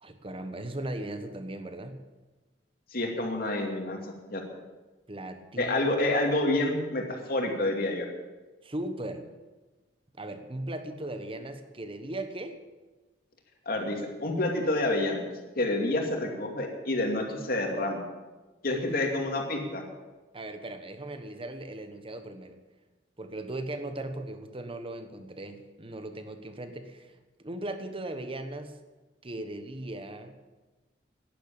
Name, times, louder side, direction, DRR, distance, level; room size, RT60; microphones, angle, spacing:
voice 1, 0.0-2.0 5.1-5.7 8.6-9.3 10.1-12.6 20.3-22.6 23.2-27.1 27.4-28.8 29.2-30.3, right 1 dB, 30° right, 8 dB, 1.2 m, -38 dB
voice 2, 2.9-4.4 5.6-8.1 13.7-15.3 15.6-18.0 18.6-19.8, left 2 dB, 55° left, 2 dB, 2.6 m, -28 dB
11.0 x 10.5 x 8.7 m, 1.2 s
head